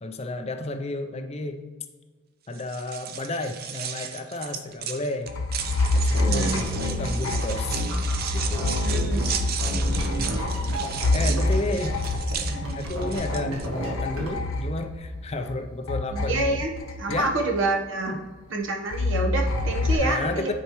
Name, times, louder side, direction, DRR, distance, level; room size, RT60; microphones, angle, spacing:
voice 1, 0.0-1.7 2.5-5.3 5.9-7.8 8.3-8.8 9.6-10.4 11.1-12.0 12.8-16.6 17.1-17.3 18.1-18.2 19.9-20.5, left 2 dB, 30° left, 7 dB, 0.5 m, -32 dB
sound 1, 2.5-13.7, right 8 dB, 45° right, 0.5 m, -35 dB
sound 2, 5.3-15.6 15.9-17.7 18.9-19.9, left 2 dB, 90° left, 0.7 m, -27 dB
sound 3, 5.6-9.3 9.6-11.6 11.8-14.3, right 1 dB, 80° right, 1.7 m, -33 dB
voice 2, 6.2-6.6 8.8-9.3 11.7-11.8 16.1-16.7 17.0-18.1 18.5-20.5, right 2 dB, 65° right, 1 dB, 1.1 m, -27 dB
10.0 x 4.7 x 3.1 m, 1.4 s
head